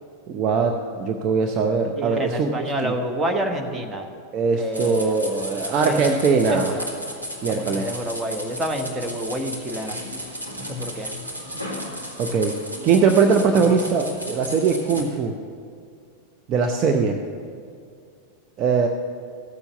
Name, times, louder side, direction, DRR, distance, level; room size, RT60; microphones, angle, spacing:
voice 1, 0.3-2.5 2.8-2.9 4.3-6.7 7.4-7.9 12.2-12.5 12.8-15.3 16.5-17.2 18.6-18.9, right 5 dB, 35° right, 3 dB, 0.7 m, -21 dB
voice 2, 2.0-4.1 4.6-5.1 5.8-6.1 6.5-6.8 7.6-10.0 10.6-11.1, right 1 dB, 15° right, 3 dB, 1.3 m, -28 dB
sound 1, 4.7-15.0, equal, 90° right, 1.6 m, -34 dB
15.0 x 7.1 x 6.9 m, 2.3 s
figure-of-eight pair, 90°, 0 cm